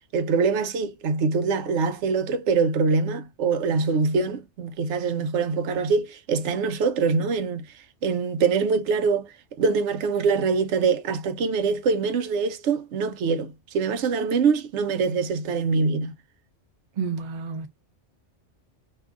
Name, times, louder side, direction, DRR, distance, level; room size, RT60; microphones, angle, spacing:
voice 1, 0.1-7.6 8.0-16.1, right 4 dB, 80° right, 0.9 m, -24 dB
voice 2, 17.0-17.7, right 5 dB, 45° right, 0.7 m, -30 dB
2.6 x 2.5 x 3.3 m
omnidirectional pair, 1.2 m